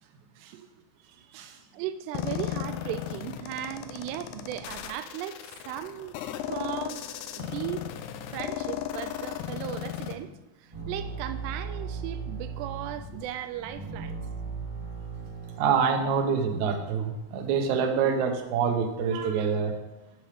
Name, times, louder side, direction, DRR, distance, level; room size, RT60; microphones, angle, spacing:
voice 1, 1.7-7.1 7.3-7.9 8.3-10.3 10.6-14.2, right 11 dB, 90° right, 2.7 m, -37 dB
sound 1, 2.1-10.1, left 11 dB, 85° left, 2.7 m, -35 dB
sound 2, 10.7-15.8, right 5 dB, 15° right, 0.8 m, -37 dB
voice 2, 15.6-19.8, right 6 dB, 70° right, 1.9 m, -26 dB
9.1 x 7.8 x 4.9 m
omnidirectional pair, 4.7 m